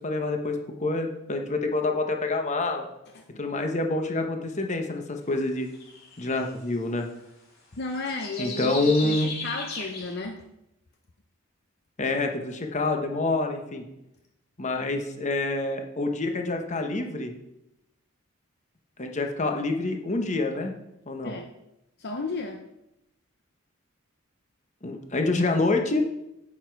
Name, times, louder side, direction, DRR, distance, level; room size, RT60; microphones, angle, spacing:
voice 1, 0.0-2.9 3.4-5.7 6.2-7.1 8.4-9.3 12.0-13.8 14.6-17.3 19.0-20.7 21.1-21.3 24.8-26.0, left 2 dB, 35° left, 4 dB, 1.1 m, -27 dB
sound 1, 5.7-6.4 7.9-10.1, left 3 dB, 75° left, 4.6 m, -36 dB
voice 2, 7.7-8.7 9.0-10.4 21.2-21.5 22.0-22.6, left 3 dB, 50° left, 4 dB, 0.8 m, -33 dB
9.4 x 8.2 x 4.7 m, 0.87 s
head